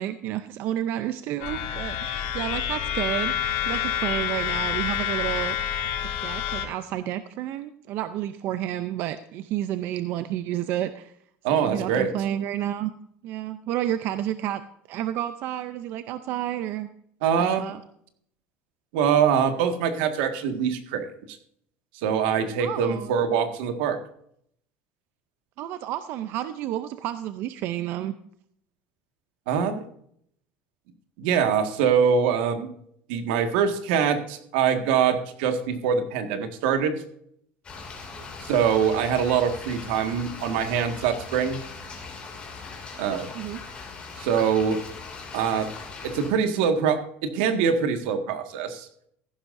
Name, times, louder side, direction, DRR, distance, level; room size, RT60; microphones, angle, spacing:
voice 1, 0.0-5.6 6.0-11.1 11.5-12.9 13.2-14.6 14.9-16.9 17.4-17.8 22.6-23.1 25.6-28.1 38.2-38.3 43.3-43.6, right 12 dB, 45° right, 11 dB, 0.5 m, -30 dB
sound 1, 1.4-6.7, left 9 dB, 85° left, 3.0 m, -28 dB
voice 2, 11.4-12.1 17.2-17.7 18.9-21.1 22.0-24.0 29.5-29.7 31.2-32.7 33.1-37.0 38.5-41.6 43.0-43.3 44.2-44.8 45.3-45.7 46.0-48.9, right 7 dB, 75° right, 7 dB, 1.8 m, -24 dB
sound 2, 37.6-46.3, left 4 dB, 20° left, 2.5 m, -40 dB
15.0 x 12.0 x 2.6 m, 0.67 s
cardioid pair, 175°, 5 cm